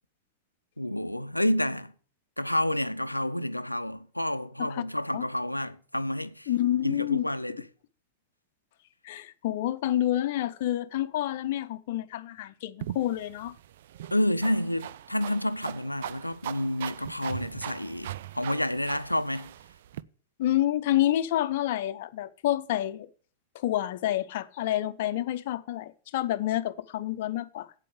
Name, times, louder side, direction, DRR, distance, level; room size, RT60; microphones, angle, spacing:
voice 1, 0.8-1.9 2.4-6.5 6.8-7.6 14.1-19.5, left 1 dB, 85° left, 0.7 m, -29 dB
voice 2, 6.5-7.3 9.0-13.5 20.4-23.1 23.5-27.7, left 13 dB, 55° left, 0.8 m, -28 dB
sound 1, 12.8-20.0, right 12 dB, 60° right, 0.4 m, -40 dB
8.4 x 8.4 x 8.1 m
figure-of-eight pair, 90°, 0 cm